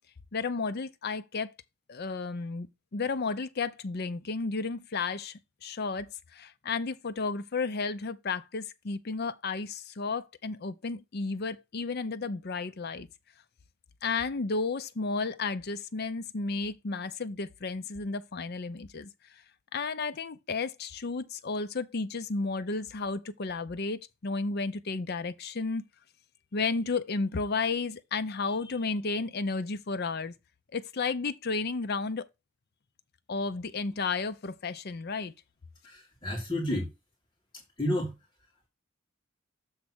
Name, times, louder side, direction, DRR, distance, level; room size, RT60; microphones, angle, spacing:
voice 1, 0.3-1.5 1.9-13.1 14.0-19.1 19.7-25.9 26.5-30.3 30.7-32.3 33.3-35.3, left 4 dB, 50° left, 0.6 m, -33 dB
voice 2, 35.8-36.9 37.8-38.1, left 1 dB, 20° left, 1.9 m, -30 dB
7.3 x 3.4 x 6.0 m
head